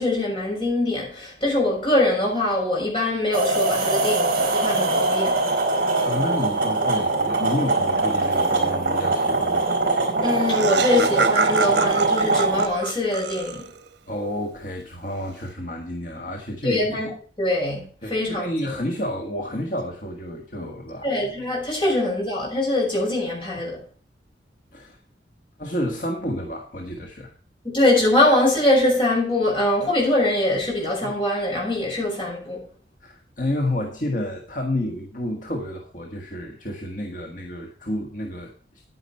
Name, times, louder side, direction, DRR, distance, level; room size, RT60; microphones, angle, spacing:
voice 1, 0.0-5.4 10.2-13.7 16.6-17.1 17.4-18.7 21.0-23.8 27.6-32.6, left 1 dB, 30° left, 6.5 m, -23 dB
sound 1, 3.3-12.7, right 2 dB, 50° right, 4.5 m, -22 dB
voice 2, 6.0-9.7 14.1-17.0 18.0-21.1 24.7-25.0 25.6-27.3 33.0-38.5, left 1 dB, 45° left, 1.7 m, -30 dB
Laughter, 9.9-10.0 10.2-13.9, right 4 dB, 80° right, 1.0 m, -27 dB
10.0 x 10.0 x 4.4 m
head